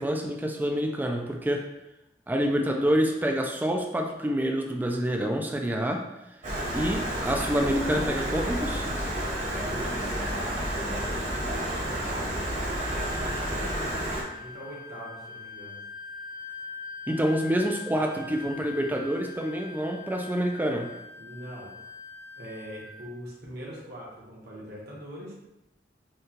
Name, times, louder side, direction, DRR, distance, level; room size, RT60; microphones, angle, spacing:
voice 1, 0.0-1.7 2.3-6.1 6.7-8.9 17.1-20.9, equal, 10° right, 2 dB, 0.3 m, -27 dB
Stream, 6.4-14.2, right 1 dB, 45° right, 1.1 m, -30 dB
voice 2, 9.5-12.5 12.8-15.8 21.2-21.7 22.4-25.3, equal, 65° right, -4 dB, 1.1 m, -43 dB
Wind instrument woodwind instrument, 12.8-23.1, left 5 dB, 55° left, 0.6 m, -43 dB
6.4 x 2.3 x 2.9 m, 0.90 s
head